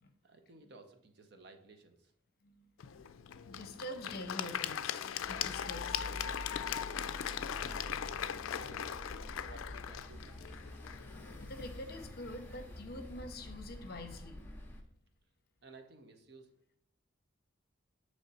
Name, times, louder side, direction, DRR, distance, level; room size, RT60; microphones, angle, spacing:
voice 1, 0.2-2.1 7.6-8.0 8.5-9.1 9.4-10.4 15.6-16.5, right 2 dB, 55° right, 6 dB, 0.7 m, -56 dB
Applause / Crowd, 2.8-11.9, left 9 dB, 85° left, 0.3 m, -40 dB
voice 2, 3.4-6.0 10.9-11.0 11.4-14.4, left 1 dB, 50° left, 7 dB, 0.6 m, -46 dB
sound 1, 5.2-14.8, left 1 dB, 10° left, 0.6 m, -48 dB
7.5 x 3.2 x 4.0 m, 0.70 s
head